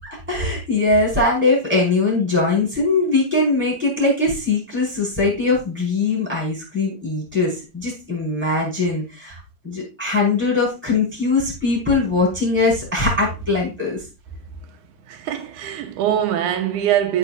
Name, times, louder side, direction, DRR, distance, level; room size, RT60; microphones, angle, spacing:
voice 1, 0.0-9.4 9.6-14.0, left 3 dB, 5° right, 5.1 m, -21 dB
voice 2, 15.1-17.2, right 10 dB, 85° right, 2.5 m, -22 dB
14.5 x 6.0 x 2.6 m
omnidirectional pair, 3.5 m